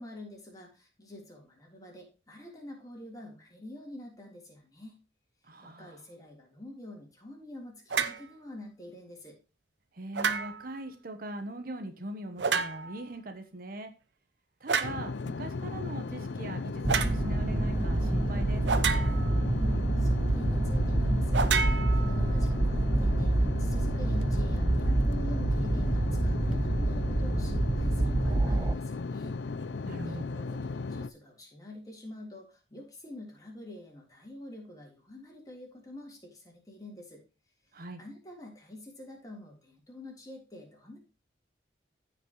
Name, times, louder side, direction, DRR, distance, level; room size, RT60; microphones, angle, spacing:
voice 1, 0.0-4.9 5.6-9.4 19.4-29.4 30.0-37.2 38.0-41.0, left 1 dB, 20° left, -1 dB, 3.4 m, -47 dB
voice 2, 5.5-6.0 9.9-13.9 14.6-18.6 29.8-30.3 37.7-38.0, right 1 dB, 50° right, 7 dB, 1.1 m, -41 dB
sound 1, 7.9-8.2 10.1-10.8 12.4-13.0 14.7-15.0 16.9-17.2 18.7-19.4 21.3-22.5, right 5 dB, 75° right, 0.8 m, -30 dB
sound 2, 14.8-31.1, left 3 dB, 70° left, 0.5 m, -36 dB
sound 3, 16.8-28.7, right 2 dB, 20° right, 0.4 m, -27 dB
15.0 x 5.3 x 3.0 m, 0.31 s
head